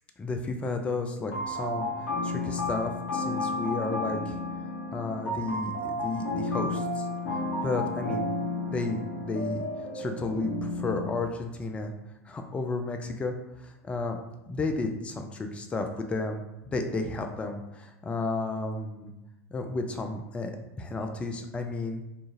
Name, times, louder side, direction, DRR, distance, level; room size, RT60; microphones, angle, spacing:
voice 1, 0.2-1.9 2.2-4.4 4.9-7.1 7.6-8.2 8.7-9.6 9.9-11.9 12.3-13.3 13.6-14.2 14.5-16.4 16.7-19.1 19.5-22.0, left 3 dB, 15° left, 5 dB, 0.3 m, -32 dB
sound 1, 1.3-11.2, left 2 dB, 55° left, 0.8 m, -32 dB
2.6 x 2.4 x 2.6 m, 0.92 s
figure-of-eight pair, 85°, 8 cm